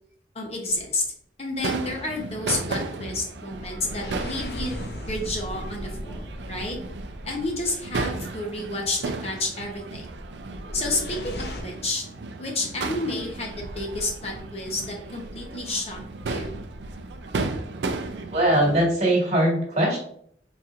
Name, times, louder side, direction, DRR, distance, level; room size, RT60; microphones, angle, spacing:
voice 1, 0.3-1.0 1.4-4.8 5.1-6.8 7.2-10.1 10.7-12.1 12.4-16.0 16.3-16.5, left 2 dB, 35° left, 1 dB, 0.8 m, -30 dB
sound 1, 0.6-1.0 3.5-8.0 10.4-11.6, left 1 dB, 65° left, 0.7 m, -37 dB
Crowd / Fireworks, 1.6-18.9, right 3 dB, 75° right, 0.4 m, -34 dB
voice 2, 18.3-20.0, right 1 dB, 40° right, -2 dB, 1.5 m, -21 dB
4.3 x 4.0 x 2.5 m, 0.65 s
head